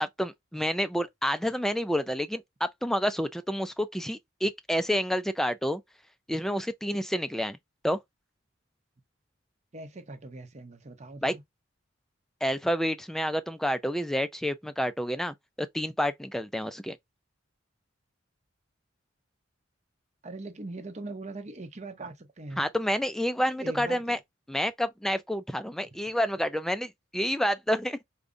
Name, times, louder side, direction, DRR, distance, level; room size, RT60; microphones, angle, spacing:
voice 1, 0.0-5.8 6.3-7.6 7.8-8.0 11.2-11.3 12.4-17.0 22.6-24.2 24.5-28.0, equal, ahead, 0.3 m, -29 dB
voice 2, 9.7-11.4 20.2-22.6 23.6-24.2, right 2 dB, 35° right, 0.7 m, -41 dB
4.9 x 2.2 x 2.6 m
head